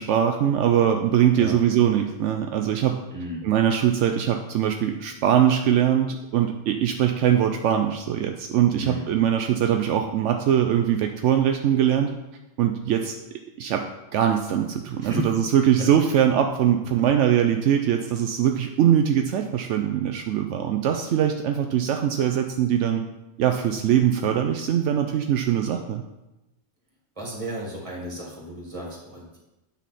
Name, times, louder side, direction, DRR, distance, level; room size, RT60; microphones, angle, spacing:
voice 1, 0.0-3.0 3.4-12.1 12.6-13.2 13.6-13.9 14.1-23.0 23.4-26.0, right 9 dB, 80° right, 5 dB, 0.9 m, -22 dB
voice 2, 3.1-3.5 8.7-9.1 15.0-15.3 15.8-15.9 17.0-17.1 27.2-29.4, equal, 25° right, -3 dB, 2.2 m, -33 dB
9.1 x 5.6 x 4.2 m, 0.99 s
omnidirectional pair, 1.2 m